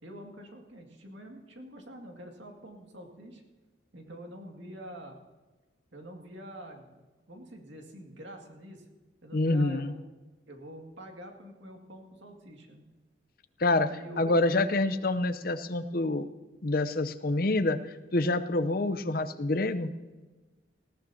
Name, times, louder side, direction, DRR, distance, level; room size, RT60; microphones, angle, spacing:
voice 1, 0.0-3.4 3.9-5.2 5.9-8.9 9.2-10.0 10.5-12.8 13.9-14.5, right 1 dB, 75° right, 2 dB, 2.1 m, -46 dB
voice 2, 9.3-9.9 13.6-13.9 14.2-16.3 16.6-17.8 18.1-19.9, left 2 dB, 50° left, 11 dB, 0.7 m, -27 dB
20.0 x 15.0 x 2.8 m, 1.2 s
head